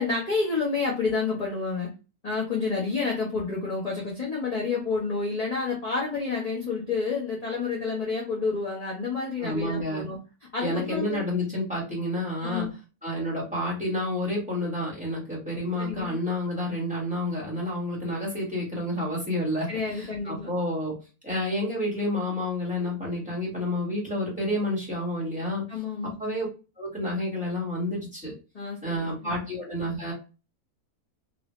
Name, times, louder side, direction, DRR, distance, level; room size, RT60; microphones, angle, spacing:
voice 1, 0.0-1.9 2.2-10.2 10.5-11.2 12.4-12.7 15.8-16.1 19.7-20.5 25.7-26.1 28.5-29.4, left 4 dB, 30° left, -4 dB, 0.8 m, -29 dB
voice 2, 9.4-10.0 10.6-12.7 13.0-21.0 21.2-25.6 26.0-26.5 26.8-28.3 28.8-30.1, left 1 dB, 5° right, -5 dB, 1.5 m, -29 dB
3.0 x 2.7 x 3.0 m, 0.30 s
omnidirectional pair, 1.7 m